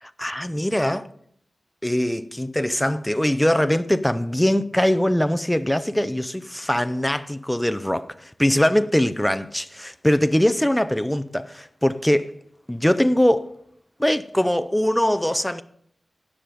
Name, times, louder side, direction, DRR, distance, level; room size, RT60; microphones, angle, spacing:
voice 1, 0.0-1.1 1.8-12.3 12.7-13.5 14.0-15.6, left 1 dB, 5° left, 0.5 m, -22 dB
17.0 x 6.0 x 5.1 m
wide cardioid pair, 130°, 0 cm